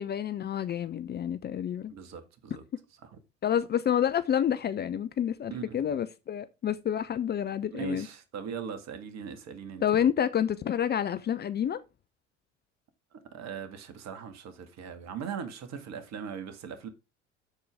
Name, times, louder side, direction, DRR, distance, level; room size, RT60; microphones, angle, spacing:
voice 1, 0.0-1.9 3.4-8.1 9.8-11.8, left 9 dB, 30° left, 0.6 m, -29 dB
voice 2, 1.9-2.6 3.1-3.2 5.5-5.8 7.7-10.1 13.1-16.9, right 7 dB, 45° right, 2.1 m, -39 dB
13.0 x 4.8 x 3.5 m
figure-of-eight pair, 70°, 36 cm